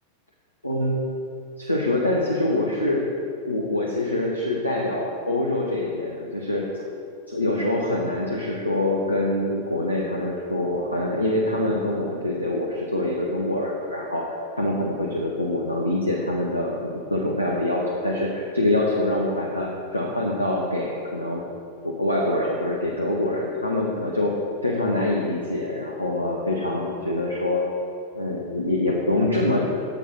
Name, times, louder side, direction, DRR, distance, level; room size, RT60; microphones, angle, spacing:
voice 1, 0.6-1.0 1.6-3.1 3.5-6.6 7.3-21.4 21.8-24.3 24.6-27.6 28.1-29.6, left 1 dB, 85° left, -2 dB, 0.9 m, -25 dB
7.4 x 7.2 x 5.6 m, 2.4 s
figure-of-eight pair, 90°, 0 cm